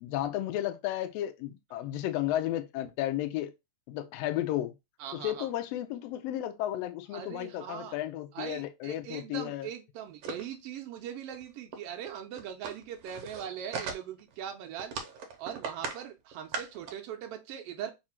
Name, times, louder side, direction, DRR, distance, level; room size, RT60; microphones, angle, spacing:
voice 1, 0.0-3.5 3.9-4.7 5.1-9.7, left 13 dB, 80° left, 1.5 m, -33 dB
voice 2, 5.0-5.5 7.1-8.0 8.3-14.9 15.4-17.9, right 9 dB, 90° right, 1.3 m, -40 dB
sound 1, 10.2-10.5 11.0-11.1 11.3-11.4 11.7-11.8 12.1-14.3 14.8-16.0 16.3-16.9, right 5 dB, 70° right, 1.7 m, -38 dB
4.4 x 2.5 x 4.3 m
omnidirectional pair, 3.3 m